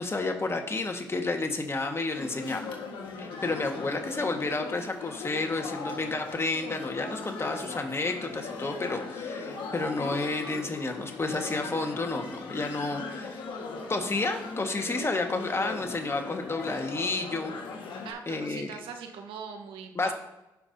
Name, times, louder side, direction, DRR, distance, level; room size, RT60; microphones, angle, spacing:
voice 1, 0.0-2.8 3.2-13.4 13.9-17.5 18.3-18.7 19.9-20.1, left 3 dB, 30° left, 4 dB, 1.6 m, -31 dB
sound 1, 2.2-18.1, left 4 dB, 70° left, 1.7 m, -39 dB
voice 2, 3.3-4.1 18.0-20.1, right 6 dB, 80° right, 5 dB, 1.2 m, -42 dB
16.0 x 5.6 x 2.8 m, 0.97 s
supercardioid pair, 60°, 9 cm